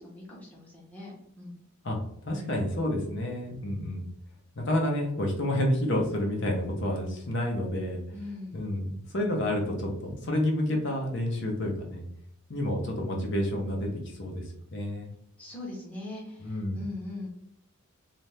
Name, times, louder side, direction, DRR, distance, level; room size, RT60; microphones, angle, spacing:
voice 1, 0.0-1.6 8.1-8.6 15.4-17.3, left 2 dB, 5° left, -5 dB, 0.8 m, -41 dB
voice 2, 2.2-4.0 4.6-8.0 8.5-12.0 12.5-15.1 16.4-16.8, left 1 dB, 55° left, 0 dB, 0.7 m, -29 dB
2.7 x 2.4 x 3.2 m, 0.72 s
head